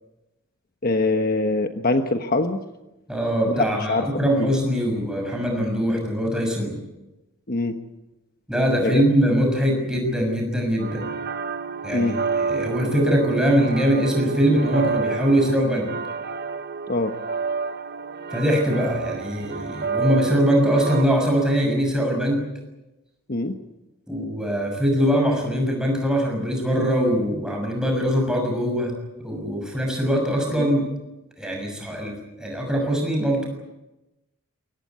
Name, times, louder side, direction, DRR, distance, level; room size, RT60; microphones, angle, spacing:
voice 1, 0.8-2.6 3.5-4.1 4.4-4.5 7.5-7.8 8.8-9.0 11.9-12.2 16.9-17.1 23.3-23.6 30.6-30.7, left 2 dB, 45° left, 6 dB, 1.1 m, -23 dB
voice 2, 3.1-6.8 8.5-11.1 11.8-15.9 18.3-22.4 24.1-28.9 29.2-30.8 31.4-33.5, equal, 5° right, 1 dB, 6.5 m, -22 dB
sound 1, 10.8-21.1, right 5 dB, 45° right, 1.0 m, -29 dB
23.5 x 18.0 x 9.4 m, 0.99 s
head